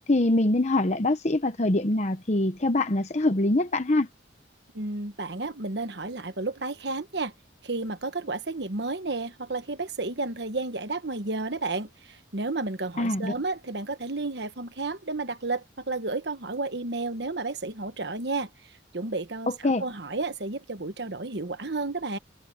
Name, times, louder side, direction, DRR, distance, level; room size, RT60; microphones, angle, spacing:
voice 1, 0.1-4.1 13.0-13.3 19.5-19.8, left 2 dB, 35° left, 0.9 m, -24 dB
voice 2, 4.7-7.3 7.6-22.2, right 3 dB, 60° right, 1.3 m, -32 dB
head